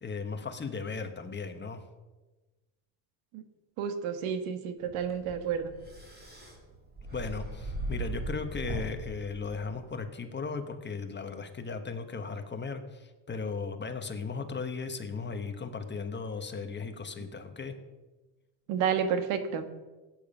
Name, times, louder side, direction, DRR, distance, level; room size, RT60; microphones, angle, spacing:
voice 1, 0.0-1.8 7.1-17.7, left 4 dB, 25° left, 6 dB, 1.3 m, -36 dB
voice 2, 3.8-5.7 18.7-19.7, right 7 dB, 85° right, 8 dB, 1.8 m, -30 dB
sound 1, 4.8-10.0, right 2 dB, 20° right, 3.5 m, -39 dB
17.0 x 9.2 x 5.6 m, 1.2 s
cardioid pair, 135°, 47 cm